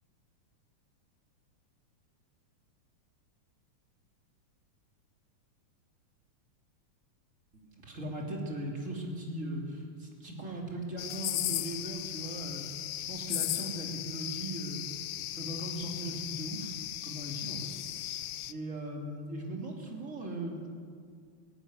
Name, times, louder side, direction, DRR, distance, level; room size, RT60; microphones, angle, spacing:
voice 1, 7.5-12.6 13.1-14.8 15.3-16.7 17.0-17.7 17.9-18.2 18.5-20.7, right 1 dB, 25° right, 0 dB, 3.3 m, -39 dB
sound 1, 11.0-18.5, left 14 dB, 85° left, 1.2 m, -37 dB
17.0 x 17.0 x 9.9 m, 2.1 s
omnidirectional pair, 3.3 m